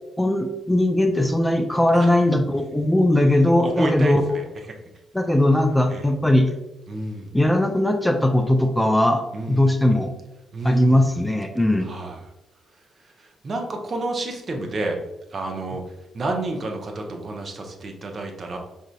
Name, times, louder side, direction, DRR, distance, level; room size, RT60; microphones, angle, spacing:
voice 1, 0.2-4.2 5.1-6.5 7.3-9.2 9.5-10.1 10.6-11.9, left 1 dB, 10° left, 5 dB, 0.4 m, -19 dB
voice 2, 3.6-4.4 5.9-6.0 6.9-7.3 9.3-9.8 10.5-11.0 11.8-12.2 13.2-15.0 15.3-15.8 16.1-18.6, right 2 dB, 40° right, 3 dB, 0.6 m, -29 dB
4.8 x 2.6 x 2.2 m, 1.0 s
figure-of-eight pair, 40°, 0 cm